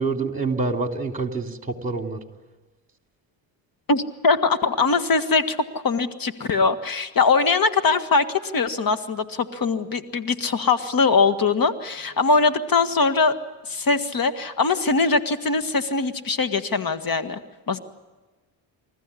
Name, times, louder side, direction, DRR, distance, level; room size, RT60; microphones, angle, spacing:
voice 1, 0.0-2.2, right 3 dB, 15° right, 4 dB, 3.3 m, -26 dB
voice 2, 3.9-13.3 13.7-17.4 17.7-17.8, left 4 dB, 45° left, 10 dB, 1.8 m, -22 dB
28.5 x 14.5 x 9.9 m, 1.2 s
supercardioid pair, 65°, 48 cm